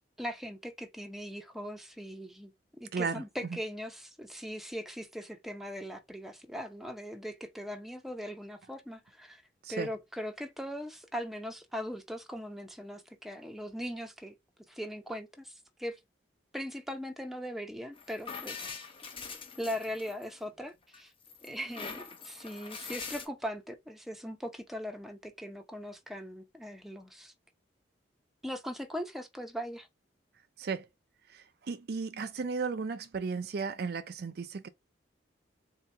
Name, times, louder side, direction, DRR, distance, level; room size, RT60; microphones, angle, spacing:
voice 1, 0.2-2.5 2.8-9.4 9.7-14.3 14.7-15.5 15.8-16.0 16.5-18.7 19.6-21.1 21.4-27.3 28.4-29.9, equal, ahead, 0.6 m, -40 dB
voice 2, 2.9-3.2 9.6-9.9 30.6-30.9 31.3-34.7, right 5 dB, 55° right, 0.4 m, -35 dB
sound 1, 18.0-20.5 20.9-23.3, left 5 dB, 30° left, 0.8 m, -43 dB
3.8 x 2.8 x 3.3 m
head